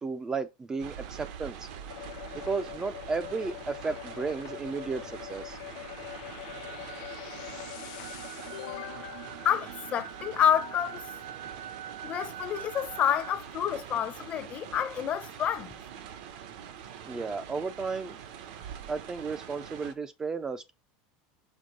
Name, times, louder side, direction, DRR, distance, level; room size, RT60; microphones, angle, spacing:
voice 1, 0.0-1.7 2.5-5.6 17.0-18.2 18.9-20.7, right 4 dB, 15° right, 0.4 m, -33 dB
sound 1, 0.8-19.9, right 8 dB, 70° right, 1.0 m, -45 dB
sound 2, 1.9-10.5, left 21 dB, 70° left, 0.3 m, -44 dB
sound 3, 5.7-13.4, right 10 dB, 90° right, 0.5 m, -45 dB
voice 2, 9.4-11.1 12.0-15.7, left 9 dB, 30° left, 0.7 m, -28 dB
5.3 x 3.7 x 5.1 m
supercardioid pair, 155°, 4 cm